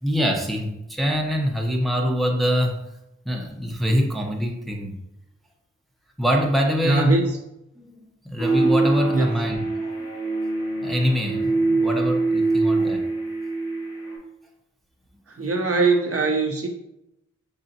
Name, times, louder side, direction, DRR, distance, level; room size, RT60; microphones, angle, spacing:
voice 1, 0.0-2.8 3.2-4.9 6.2-7.2 7.8-8.0 8.2-10.1 10.8-13.1 15.4-15.5, equal, ahead, 0 dB, 0.8 m, -24 dB
voice 2, 6.8-7.3 9.1-9.3 15.4-16.7, right 3 dB, 50° right, 2 dB, 0.7 m, -21 dB
sound 1, 8.4-14.2, right 3 dB, 85° left, 1.6 m, -24 dB
4.8 x 3.9 x 2.7 m, 0.86 s
wide cardioid pair, 70°, 30 cm